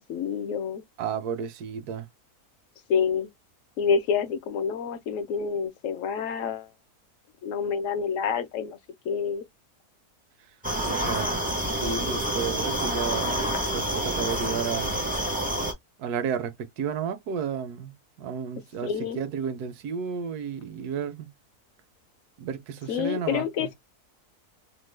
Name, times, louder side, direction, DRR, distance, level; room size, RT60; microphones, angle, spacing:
voice 1, 0.0-0.8 2.9-3.3 3.8-6.7 7.4-8.8 9.0-9.4 13.5-13.6 18.8-19.2 22.9-23.7, left 6 dB, 65° left, 0.9 m, -28 dB
voice 2, 1.0-2.1 10.8-11.4 11.8-13.4 13.7-15.1 16.0-21.3 22.4-23.7, right 7 dB, 80° right, 1.2 m, -32 dB
sound 1, 10.6-15.7, right 1 dB, 10° right, 0.4 m, -28 dB
3.0 x 2.2 x 3.2 m
omnidirectional pair, 1.6 m